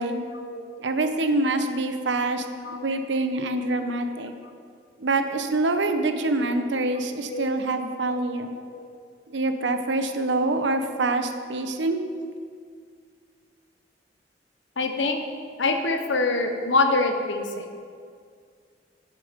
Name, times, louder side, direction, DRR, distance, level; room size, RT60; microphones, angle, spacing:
voice 1, 0.8-2.4 2.7-4.3 5.0-8.5 9.3-12.0, right 2 dB, 75° right, 7 dB, 0.8 m, -25 dB
voice 2, 2.3-2.9 7.3-7.5 8.7-8.9 14.8-15.2 15.6-17.6, left 3 dB, 90° left, 5 dB, 0.9 m, -25 dB
11.5 x 7.5 x 5.2 m, 2.1 s
head